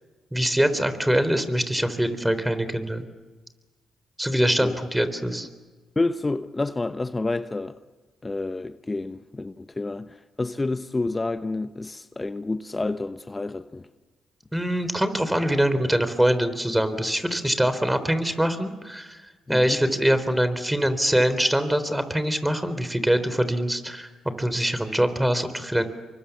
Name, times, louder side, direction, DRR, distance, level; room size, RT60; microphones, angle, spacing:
voice 1, 0.3-3.1 4.2-5.5 14.5-24.1 24.4-25.8, right 1 dB, 5° right, 3.9 m, -23 dB
voice 2, 6.0-7.8 8.2-13.9 19.5-19.8, left 2 dB, 25° left, 0.9 m, -29 dB
29.0 x 24.0 x 7.3 m
hypercardioid pair, 50°, 0 cm